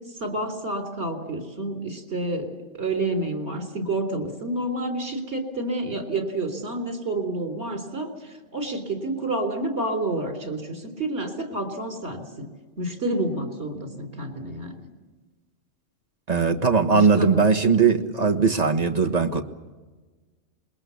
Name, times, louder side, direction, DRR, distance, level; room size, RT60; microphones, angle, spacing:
voice 1, 0.2-12.5 12.8-14.8 16.9-17.3, right 2 dB, 60° right, 4.1 m, -29 dB
voice 2, 16.3-19.4, right 5 dB, 30° right, 1.6 m, -20 dB
27.5 x 22.0 x 7.1 m
omnidirectional pair, 1.3 m